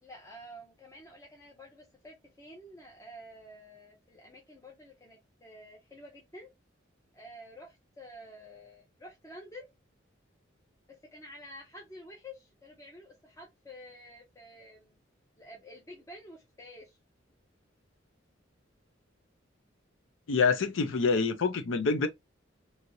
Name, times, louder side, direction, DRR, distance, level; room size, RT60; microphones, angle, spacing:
voice 1, 0.0-6.5 7.1-9.7 11.1-15.0 15.4-17.0, equal, 15° left, 0.7 m, -50 dB
voice 2, 20.3-22.1, left 4 dB, 85° left, 0.6 m, -26 dB
3.0 x 2.8 x 2.6 m
head